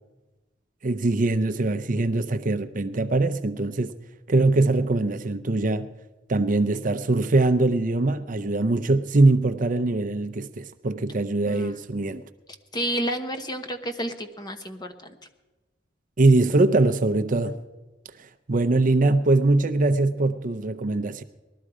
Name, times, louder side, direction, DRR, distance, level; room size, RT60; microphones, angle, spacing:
voice 1, 0.8-3.9 4.3-5.9 6.3-12.2 16.2-17.6 18.2-21.2, right 2 dB, 45° right, 0.6 m, -22 dB
voice 2, 11.5-11.8 12.7-15.1, equal, 20° left, 1.0 m, -30 dB
20.0 x 12.5 x 4.9 m
head